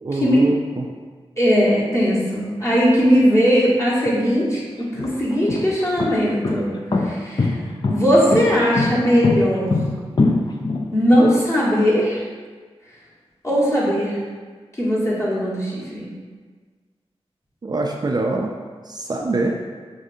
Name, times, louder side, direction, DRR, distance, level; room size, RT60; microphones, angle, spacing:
voice 1, 0.0-0.9 17.6-18.5 18.9-19.6, right 2 dB, 40° right, 1 dB, 0.4 m, -24 dB
voice 2, 1.4-6.7 7.0-9.7 10.9-12.2 13.4-14.2 14.7-16.1, equal, 25° left, -7 dB, 1.4 m, -19 dB
sound 1, 4.0-4.1 4.8-11.3, left 3 dB, 45° left, 0.4 m, -22 dB
4.9 x 3.2 x 2.7 m, 1.5 s
cardioid pair, 55°, 11 cm